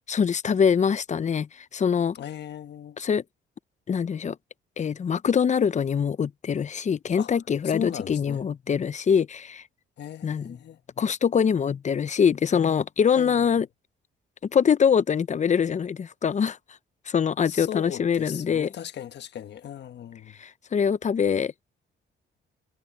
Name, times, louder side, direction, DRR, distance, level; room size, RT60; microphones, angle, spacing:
voice 1, 0.1-2.2 3.0-3.2 3.9-4.4 4.8-9.6 10.2-10.6 11.0-13.7 14.5-16.6 17.1-18.7 20.4-21.5, left 7 dB, 35° left, 0.7 m, -24 dB
voice 2, 2.1-3.0 7.2-7.4 7.6-8.4 10.0-10.8 13.1-13.5 17.4-20.4, left 10 dB, 60° left, 1.3 m, -37 dB
cardioid pair, 90°, 20 cm